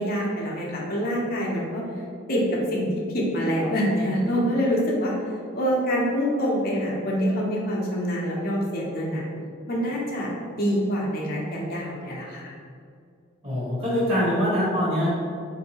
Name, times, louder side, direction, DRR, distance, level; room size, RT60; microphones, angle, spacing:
voice 1, 0.0-1.8 2.3-2.9 3.1-5.1 5.5-9.2 9.7-10.3 10.6-12.5, equal, 45° left, -3 dB, 0.7 m, -25 dB
voice 2, 13.4-15.1, equal, 30° right, -11 dB, 1.4 m, -23 dB
4.4 x 2.7 x 2.9 m, 2.3 s
head